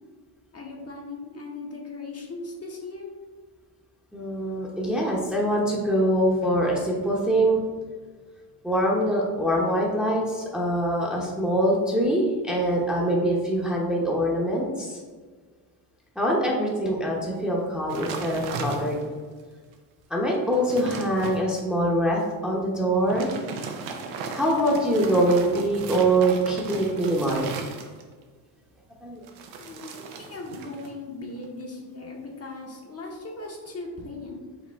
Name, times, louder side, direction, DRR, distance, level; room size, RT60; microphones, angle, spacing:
voice 1, 0.5-3.1 29.6-34.4, left 3 dB, 30° left, -1 dB, 0.9 m, -38 dB
voice 2, 4.1-7.6 8.6-15.0 16.2-19.0 20.1-23.3 24.3-27.5 29.0-29.2, right 1 dB, ahead, -3 dB, 0.8 m, -24 dB
sound 1, 17.9-19.2 19.7-19.8 20.3-21.4 22.9-28.2 29.2-30.9 31.2-31.6, right 4 dB, 85° right, 0.7 m, -36 dB
5.0 x 2.7 x 3.5 m, 1.5 s
supercardioid pair, 90°, 47 cm